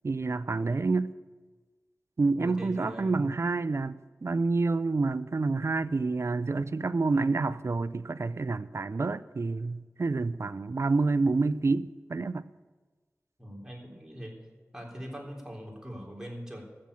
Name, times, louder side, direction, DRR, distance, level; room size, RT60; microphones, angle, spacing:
voice 1, 0.0-1.1 2.2-12.5, right 3 dB, 60° right, 15 dB, 0.5 m, -28 dB
voice 2, 2.4-3.4 13.4-14.4 14.7-16.6, equal, 10° right, -2 dB, 3.8 m, -41 dB
14.0 x 7.7 x 8.7 m, 1.3 s
wide cardioid pair, 55°, 5 cm